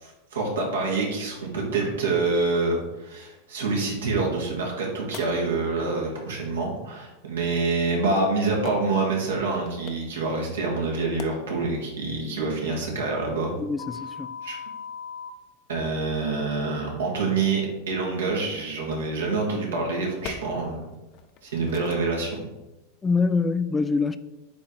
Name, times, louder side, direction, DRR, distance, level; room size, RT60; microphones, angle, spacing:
voice 1, 0.0-13.5 14.4-14.6 15.7-20.8 21.4-22.4, right 3 dB, 85° right, 2.1 m, -26 dB
sound 1, 5.1-5.2 7.6-7.7 8.6-8.7 9.5-9.9 10.9-11.2 13.8-15.3 17.7-17.8 18.9-19.1 20.2-20.3 21.1-21.4 21.7-21.9, left 8 dB, 50° left, 0.8 m, -37 dB
voice 2, 13.6-14.4 23.0-24.2, left 4 dB, 15° left, 0.4 m, -24 dB
8.6 x 3.2 x 4.0 m
hypercardioid pair, 110°, 0 cm